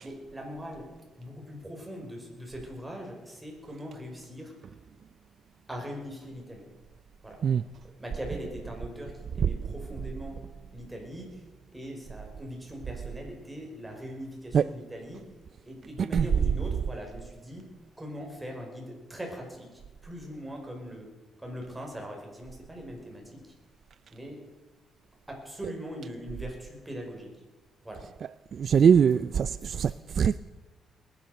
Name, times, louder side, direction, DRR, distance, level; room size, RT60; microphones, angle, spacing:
voice 1, 0.0-0.9 1.2-4.5 5.7-6.6 7.2-7.4 8.0-10.4 10.7-11.3 11.7-15.2 15.6-17.6 18.0-21.1 21.4-23.5 24.1-24.4 25.3-27.3 27.8-28.1 28.9-29.0 29.6-30.4, equal, 10° right, 5.3 m, -41 dB
voice 2, 28.5-30.4, right 7 dB, 55° right, 0.4 m, -22 dB
20.5 x 10.5 x 6.7 m
cardioid pair, 90°, 0 cm